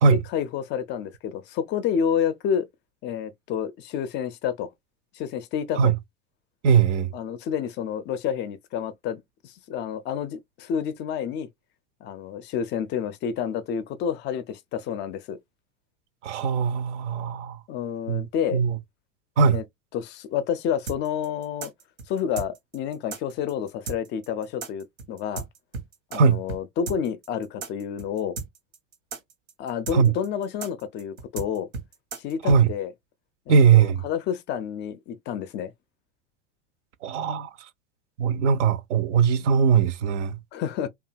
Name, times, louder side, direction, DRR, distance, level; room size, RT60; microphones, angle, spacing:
voice 1, 0.1-2.7 3.0-4.7 5.1-5.9 7.1-11.5 12.0-15.4 17.7-18.6 19.5-19.6 19.9-21.7 22.1-25.5 26.1-28.4 29.6-31.7 32.2-32.9 33.5-35.7 40.5-40.9, left 8 dB, 30° left, 0.4 m, -29 dB
voice 2, 6.6-7.1 16.2-17.6 18.1-18.2 18.5-18.8 19.4-19.6 26.1-26.4 29.9-30.1 32.4-32.7 33.5-34.0 37.0-37.5 38.2-40.4, right 6 dB, 65° right, 0.6 m, -20 dB
sound 1, 20.9-26.2 26.5-26.6 26.9-32.6, right 4 dB, 80° right, 1.0 m, -35 dB
2.7 x 2.3 x 2.5 m
figure-of-eight pair, 85°, 39 cm